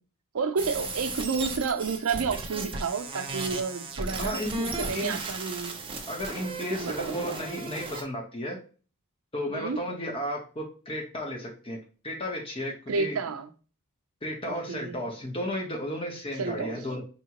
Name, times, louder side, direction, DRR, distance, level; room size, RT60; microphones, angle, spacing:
voice 1, 0.3-5.8 6.7-7.4 9.5-9.8 12.9-13.5 14.4-15.0 16.4-16.8, right 5 dB, 70° right, 0.5 m, -31 dB
sound 1, 0.6-8.0, right 3 dB, 25° right, 0.6 m, -35 dB
voice 2, 4.2-4.6 4.9-5.2 6.1-8.6 9.3-11.8 12.0-13.2 14.2-17.0, left 1 dB, 25° left, 0.9 m, -33 dB
4.6 x 2.9 x 2.9 m
head